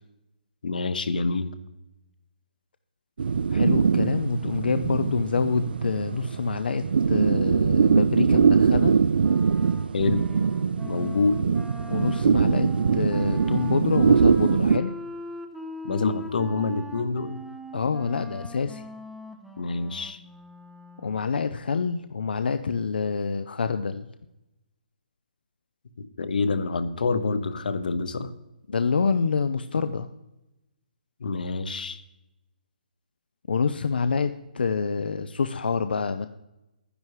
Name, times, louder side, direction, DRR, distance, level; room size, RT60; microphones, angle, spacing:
voice 1, 0.6-1.5 9.9-10.2 10.8-11.4 15.8-17.4 19.6-20.2 26.0-28.3 31.2-32.0, left 3 dB, 60° left, 12 dB, 1.0 m, -27 dB
sound 1, 3.2-14.8, right 6 dB, 85° right, 0.4 m, -22 dB
voice 2, 3.5-8.9 11.9-14.9 17.7-18.8 21.0-24.1 28.7-30.1 33.5-36.3, left 5 dB, 85° left, 10 dB, 0.6 m, -27 dB
Wind instrument woodwind instrument, 9.2-21.2, right 1 dB, ahead, 0.4 m, -41 dB
11.0 x 10.0 x 4.8 m, 0.96 s
hypercardioid pair, 180°, 5 cm